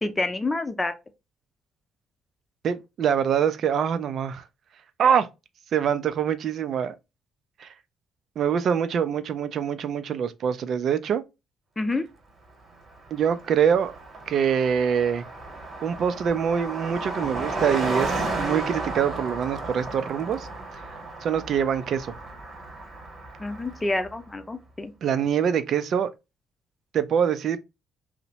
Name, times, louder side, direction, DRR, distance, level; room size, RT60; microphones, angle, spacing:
voice 1, 0.0-0.9 11.8-12.1 23.4-24.9, left 2 dB, 20° left, 0.6 m, -28 dB
voice 2, 2.6-4.4 5.0-5.3 5.7-6.9 7.6-7.7 8.4-11.2 13.1-14.0 14.3-15.2 15.8-20.5 20.8-20.9 21.2-22.1 25.0-26.1 26.9-27.6, right 8 dB, 65° right, 0.4 m, -24 dB
Car passing by, 12.8-12.9 13.1-24.1, right 2 dB, 45° right, 1.0 m, -33 dB
2.8 x 2.1 x 2.7 m
hypercardioid pair, 55°, 0 cm